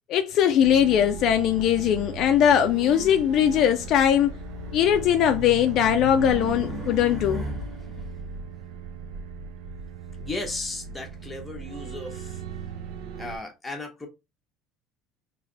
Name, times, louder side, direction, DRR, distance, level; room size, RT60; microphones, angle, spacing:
voice 1, 0.1-4.3 4.7-7.5, left 9 dB, 45° left, 0.4 m, -20 dB
sound 1, 0.6-13.4, right 6 dB, 65° right, 0.7 m, -38 dB
Race car auto racing, 3.8-8.1, left 1 dB, 10° right, 1.1 m, -36 dB
voice 2, 10.2-12.4 13.1-14.1, left 2 dB, 5° left, 0.8 m, -35 dB
3.2 x 2.9 x 3.8 m
cardioid pair, 175°, 0 cm